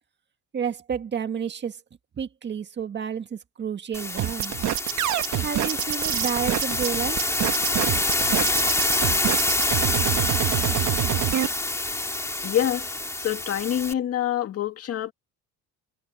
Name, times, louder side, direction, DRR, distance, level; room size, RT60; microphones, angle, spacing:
voice 1, 0.5-1.8 2.2-4.6 5.4-7.3, right 7 dB, 30° right, 1.7 m, -30 dB
sound 1, 3.9-13.9, left 2 dB, 10° left, 2.6 m, -26 dB
sound 2, 4.2-11.5, right 13 dB, 55° right, 1.2 m, -26 dB
voice 2, 12.4-12.9 13.2-15.1, left 11 dB, 45° left, 2.0 m, -26 dB
cardioid pair, 135°, 35 cm